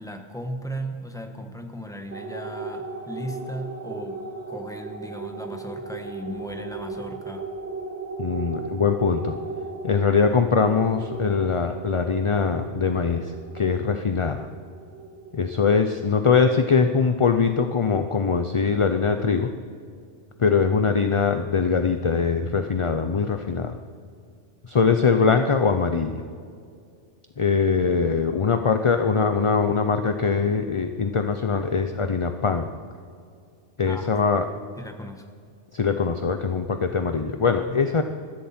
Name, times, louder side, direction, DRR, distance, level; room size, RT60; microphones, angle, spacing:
voice 1, 0.0-7.5 33.8-34.1 34.8-35.2 37.7-37.8, equal, 5° left, 4 dB, 1.3 m, -36 dB
sound 1, 2.1-16.9, right 3 dB, 70° right, 2.3 m, -37 dB
voice 2, 8.2-9.4 9.8-14.5 15.3-19.5 20.4-23.8 24.7-26.2 27.4-32.7 33.8-34.5 35.7-38.0, left 5 dB, 35° left, 7 dB, 0.5 m, -22 dB
21.5 x 14.0 x 4.4 m, 2.2 s
omnidirectional pair, 1.2 m